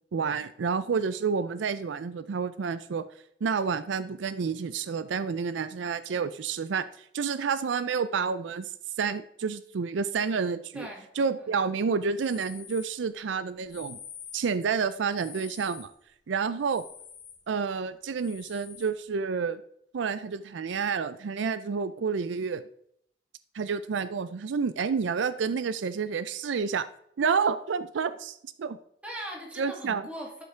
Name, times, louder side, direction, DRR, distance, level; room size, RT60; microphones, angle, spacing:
voice 1, 0.1-3.1 3.4-8.7 9.0-10.9 11.2-14.0 14.3-15.9 16.3-16.8 17.5-19.6 19.9-22.6 23.5-26.9 27.2-28.8 29.6-30.1, right 5 dB, 80° right, 14 dB, 0.4 m, -29 dB
voice 2, 10.7-11.1 11.4-11.6 29.0-30.4, equal, 5° right, -1 dB, 2.0 m, -40 dB
sound 1, 12.2-13.0 13.6-14.5 15.2-15.9 16.7-17.4 18.2-18.9, left 8 dB, 75° left, 2.6 m, -47 dB
11.5 x 5.5 x 3.4 m, 0.69 s
head